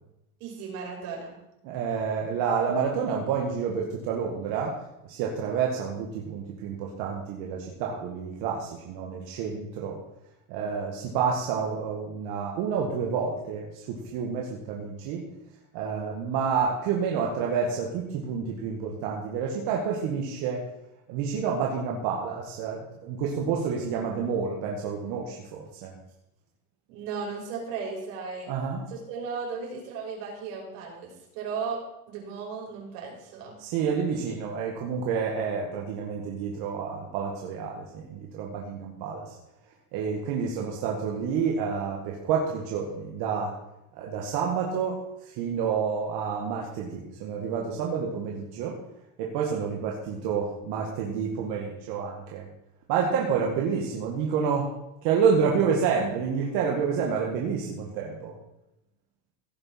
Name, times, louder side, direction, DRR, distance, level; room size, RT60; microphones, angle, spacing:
voice 1, 0.4-1.4 26.9-28.5 28.9-33.5, right 5 dB, 75° right, -1 dB, 5.3 m, -36 dB
voice 2, 1.6-4.8 5.1-10.0 10.5-15.2 15.7-20.6 21.1-25.9 28.5-28.8 33.6-39.4 39.9-43.5 43.9-45.0 45.3-48.8 49.2-52.4 52.9-54.7 55.0-58.3, right 6 dB, 55° right, -1 dB, 2.1 m, -29 dB
16.5 x 6.8 x 6.0 m, 0.87 s
cardioid pair, 165°, 46 cm